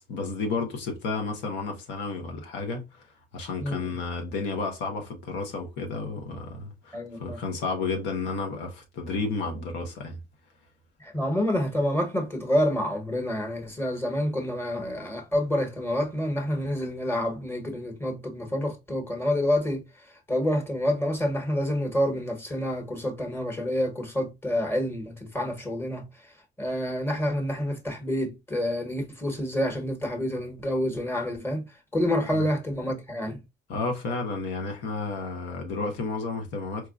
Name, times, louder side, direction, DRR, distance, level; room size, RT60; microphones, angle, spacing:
voice 1, 0.0-3.0 3.3-10.2 32.3-32.5 33.7-36.9, left 3 dB, 90° left, 1.0 m, -32 dB
voice 2, 3.6-3.9 6.9-7.4 11.0-19.8 20.3-26.0 26.6-33.4, left 1 dB, 15° left, 1.2 m, -28 dB
4.6 x 2.4 x 2.4 m
cardioid pair, 125°, 18 cm